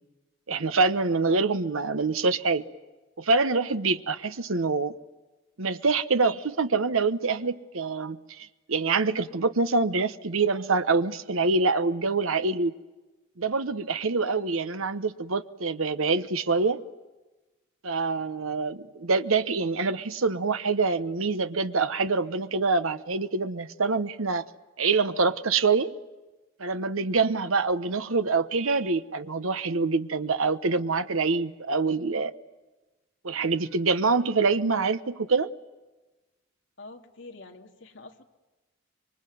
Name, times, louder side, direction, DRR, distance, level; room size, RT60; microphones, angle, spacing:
voice 1, 0.5-2.6 3.2-4.9 5.6-12.7 13.4-16.8 17.8-24.4 24.8-25.9 26.6-32.3 33.2-35.5, right 4 dB, 90° right, 1.0 m, -25 dB
voice 2, 36.8-38.2, left 3 dB, 65° left, 2.4 m, -46 dB
26.0 x 23.5 x 9.3 m
head